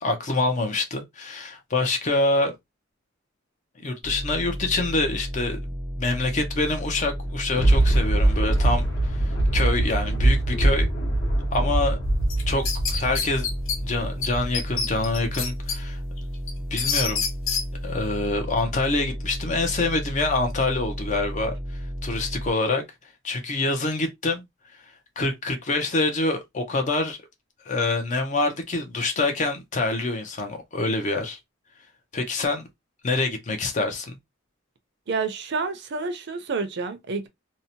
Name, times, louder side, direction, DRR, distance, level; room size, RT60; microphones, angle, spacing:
voice 1, 0.0-2.5 3.8-5.6 6.0-10.9 11.5-12.0 12.5-13.5 13.8-16.0 16.7-17.2 17.8-21.5 22.0-22.8 23.2-24.4 25.2-27.2 27.7-31.4 32.1-32.6 33.0-34.2, left 2 dB, 40° left, 0.5 m, -26 dB
sound 1, 4.0-22.5, equal, 10° right, 0.3 m, -33 dB
Thunder, 7.1-14.6 15.1-15.2, right 2 dB, 60° left, 1.0 m, -23 dB
sound 2, 12.3-13.8 14.2-14.3 14.5-15.8 16.2-17.6, left 6 dB, 85° left, 0.8 m, -27 dB
voice 2, 35.1-37.3, right 4 dB, 60° right, 0.5 m, -29 dB
2.7 x 2.1 x 2.7 m
head